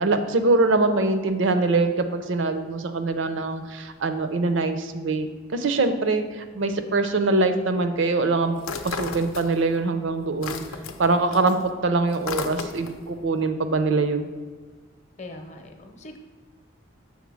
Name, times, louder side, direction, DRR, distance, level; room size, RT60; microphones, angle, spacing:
voice 1, 0.0-10.6 11.0-11.6 11.8-14.3, right 3 dB, 65° right, 9 dB, 0.5 m, -23 dB
sound 1, 8.6-9.8 10.1-13.1, left 5 dB, 90° left, 0.6 m, -34 dB
voice 2, 15.2-16.2, left 2 dB, 35° left, 4 dB, 0.7 m, -41 dB
7.2 x 3.6 x 6.2 m, 1.5 s
head